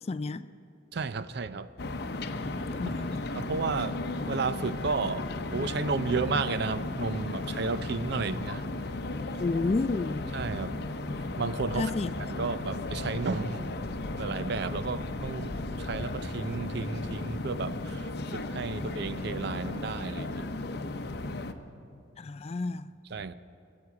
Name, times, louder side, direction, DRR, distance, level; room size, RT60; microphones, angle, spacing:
voice 1, 0.1-0.5 2.7-3.1 9.4-10.3 11.7-12.2 22.2-22.9, left 3 dB, 30° left, 0.3 m, -30 dB
voice 2, 0.9-1.7 3.3-4.0 4.3-5.3 5.5-8.6 10.3-10.8 11.4-11.9 12.3-20.4 23.1-23.3, right 4 dB, 55° right, 0.5 m, -33 dB
sound 1, 1.8-21.5, left 2 dB, 55° left, 0.7 m, -35 dB
20.0 x 8.1 x 8.3 m
head